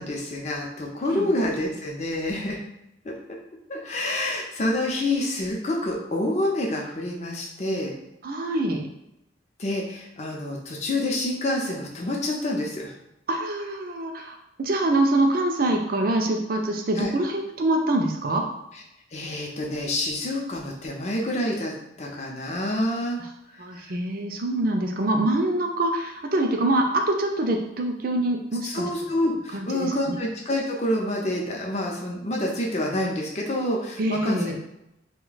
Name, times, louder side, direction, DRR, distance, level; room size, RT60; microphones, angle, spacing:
voice 1, 0.0-2.6 3.0-3.1 3.7-7.9 9.6-12.9 17.0-17.1 18.7-18.8 19.1-21.7 22.0-23.2 28.6-34.6, left 1 dB, 35° left, -1 dB, 0.6 m, -27 dB
voice 2, 8.2-8.9 13.3-18.4 23.6-28.8 29.5-30.2 34.0-34.6, right 1 dB, 50° right, 3 dB, 0.5 m, -25 dB
2.7 x 2.2 x 3.9 m, 0.86 s
head